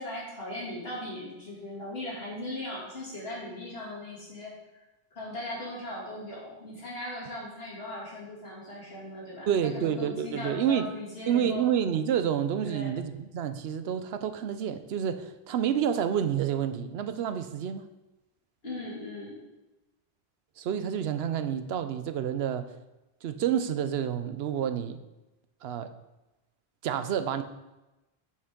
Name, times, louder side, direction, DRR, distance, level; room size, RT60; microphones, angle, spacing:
voice 1, 0.0-4.8 5.1-11.6 12.6-12.9 18.6-19.3, left 1 dB, 70° left, -6 dB, 2.9 m, -38 dB
voice 2, 9.5-10.9 11.3-17.9 20.6-22.7 23.2-25.0 25.6-25.9 26.8-27.4, right 9 dB, 85° right, 10 dB, 0.8 m, -29 dB
8.6 x 5.7 x 3.7 m, 1.0 s
omnidirectional pair, 1.0 m